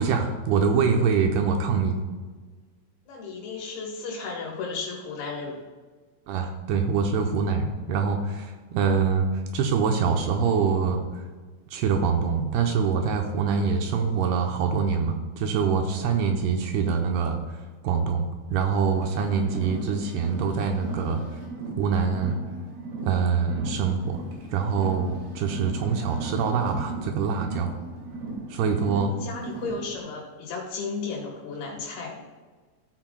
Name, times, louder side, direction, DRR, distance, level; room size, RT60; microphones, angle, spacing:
voice 1, 0.0-2.0 6.3-9.3 9.5-11.2 11.7-17.6 17.8-21.2 21.8-22.4 23.0-24.2 24.5-27.8 28.5-29.1, right 5 dB, 80° right, 4 dB, 2.7 m, -24 dB
voice 2, 3.1-5.6 19.3-20.0 28.9-32.2, left 4 dB, 70° left, -1 dB, 3.3 m, -34 dB
Car, 18.9-30.0, right 2 dB, 60° right, 4.1 m, -38 dB
15.0 x 8.7 x 2.3 m, 1.4 s
omnidirectional pair, 4.9 m